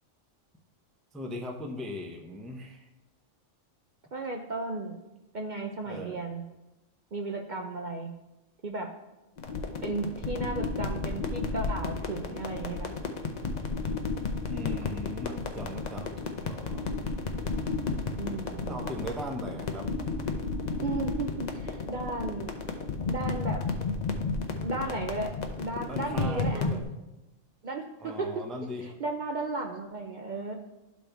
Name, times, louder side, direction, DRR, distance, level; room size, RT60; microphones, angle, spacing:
voice 1, 1.1-2.9 5.9-6.2 14.3-16.9 18.7-19.9 25.9-26.8 28.0-28.9, equal, ahead, 1 dB, 0.4 m, -39 dB
voice 2, 4.1-5.0 5.3-6.4 7.1-8.1 8.6-8.9 9.8-12.9 18.2-18.8 20.8-22.5 23.1-23.6 24.6-26.7 27.6-28.4 28.8-30.5, right 3 dB, 50° right, 2 dB, 0.6 m, -35 dB
sound 1, 9.4-26.8, left 4 dB, 45° left, 0.6 m, -33 dB
11.5 x 4.2 x 3.4 m, 0.99 s
omnidirectional pair, 1.3 m